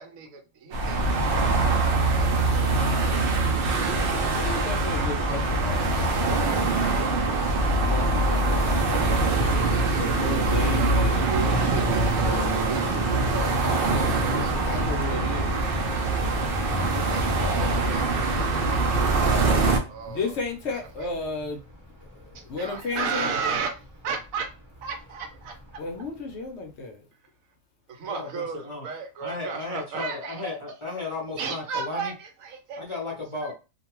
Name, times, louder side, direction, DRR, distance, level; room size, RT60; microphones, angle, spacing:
voice 1, 0.0-3.4 4.7-5.4 5.7-6.0 9.5-14.8 15.1-15.5 17.0-20.4 20.7-21.1 22.3-23.7 24.0-24.5 24.8-25.8 27.9-30.5 31.4-32.8 33.4-33.5, right 5 dB, 80° right, 1.0 m, -35 dB
sound 1, 0.7-19.8, right 2 dB, 60° right, 0.6 m, -23 dB
voice 2, 4.3-7.4 7.7-12.6 14.6-15.6 20.1-21.6 22.4-23.3 25.8-27.0, left 3 dB, 60° left, 0.8 m, -34 dB
Thunder, 10.8-26.7, left 1 dB, 25° right, 0.8 m, -41 dB
voice 3, 23.2-23.6 28.0-28.8 29.2-32.1 32.8-33.5, left 3 dB, 30° left, 0.6 m, -35 dB
2.5 x 2.2 x 2.9 m
omnidirectional pair, 1.4 m